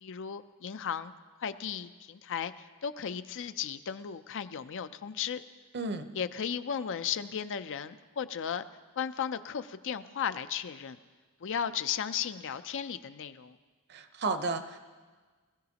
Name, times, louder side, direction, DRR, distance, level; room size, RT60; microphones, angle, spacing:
voice 1, 0.0-1.1 1.4-5.4 6.1-8.6 9.0-11.0 11.4-13.6, left 8 dB, 60° left, 12 dB, 0.5 m, -35 dB
voice 2, 5.7-6.1 13.9-14.8, right 3 dB, 50° right, 8 dB, 0.8 m, -33 dB
20.5 x 14.5 x 2.9 m, 1.4 s
head